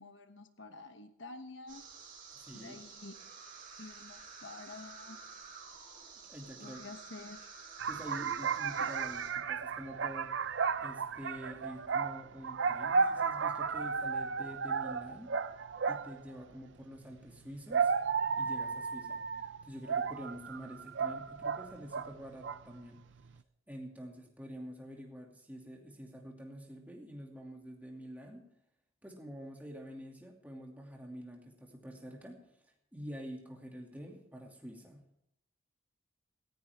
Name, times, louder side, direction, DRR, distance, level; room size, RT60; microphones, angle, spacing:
voice 1, 0.0-1.8 2.5-3.2 3.8-5.2 6.6-7.5, left 3 dB, 60° left, 7 dB, 1.2 m, -49 dB
sound 1, 1.7-9.3, right 5 dB, 40° right, 4.4 m, -51 dB
voice 2, 2.3-2.8 6.3-6.8 7.9-10.3 10.8-15.4 15.9-17.9 18.4-23.0 23.7-28.5 29.0-32.5 32.9-35.0, equal, 10° right, 0 dB, 2.5 m, -47 dB
sound 2, 7.8-16.2 17.3-22.1 22.4-22.8, right 5 dB, 60° right, 0.5 m, -34 dB
18.0 x 15.5 x 3.6 m, 0.78 s
head